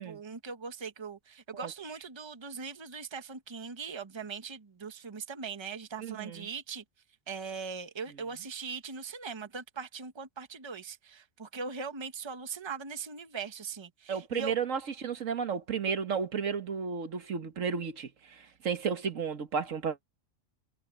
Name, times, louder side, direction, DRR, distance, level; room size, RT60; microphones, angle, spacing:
voice 1, 0.0-6.8 7.3-14.5, right 5 dB, 20° right, 1.1 m, -40 dB
voice 2, 6.0-6.5 14.1-20.0, right 6 dB, 75° right, 1.6 m, -33 dB
omnidirectional pair, 1.4 m